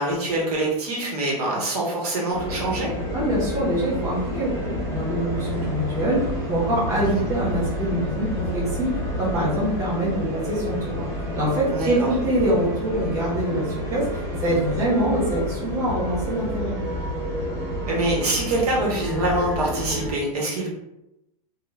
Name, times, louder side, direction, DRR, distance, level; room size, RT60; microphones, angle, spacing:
voice 1, 0.0-2.9 7.1-7.3 11.7-12.1 17.9-20.7, right 1 dB, 80° right, -3 dB, 1.2 m, -25 dB
sound 1, 2.3-20.1, equal, 10° left, 1.0 m, -29 dB
voice 2, 3.1-8.9 9.2-11.1 11.3-16.8, right 1 dB, 15° right, -8 dB, 0.9 m, -25 dB
2.4 x 2.3 x 3.2 m, 0.90 s
supercardioid pair, 165°, 19 cm